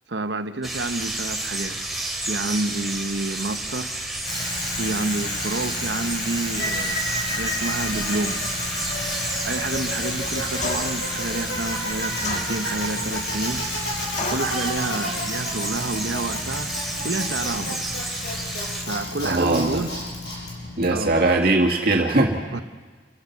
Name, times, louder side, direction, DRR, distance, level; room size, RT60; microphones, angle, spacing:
voice 1, 0.1-1.8 2.3-4.0 4.7-8.4 9.4-13.7 14.2-16.7 17.0-17.8 18.9-19.9 20.9-21.2 22.5-22.6, right 2 dB, 85° right, 9 dB, 1.1 m, -29 dB
sound 1, 0.6-18.8, right 2 dB, ahead, 2.5 m, -31 dB
Bicycle, 4.2-21.3, left 1 dB, 70° left, 6.7 m, -30 dB
sound 2, 10.6-11.1 12.2-12.9 14.2-14.6, left 3 dB, 40° left, 1.6 m, -31 dB
voice 2, 19.2-19.8 20.8-22.4, right 2 dB, 60° right, 1 dB, 2.3 m, -20 dB
29.5 x 15.5 x 5.9 m, 1.4 s
head